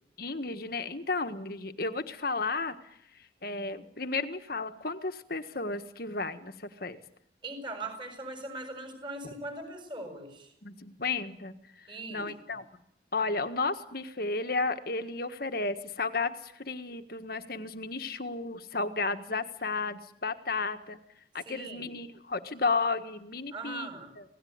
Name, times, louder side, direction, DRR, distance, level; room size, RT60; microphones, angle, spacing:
voice 1, 0.2-2.8 3.4-7.0 10.6-11.6 12.1-12.6 13.1-21.0 21.3-23.9 24.2-24.3, left 3 dB, 50° left, 8 dB, 1.6 m, -33 dB
voice 2, 7.4-10.5 11.9-12.3 21.4-22.0 23.5-24.1, right 2 dB, 25° right, 6 dB, 7.1 m, -40 dB
27.0 x 18.0 x 9.6 m, 0.73 s
head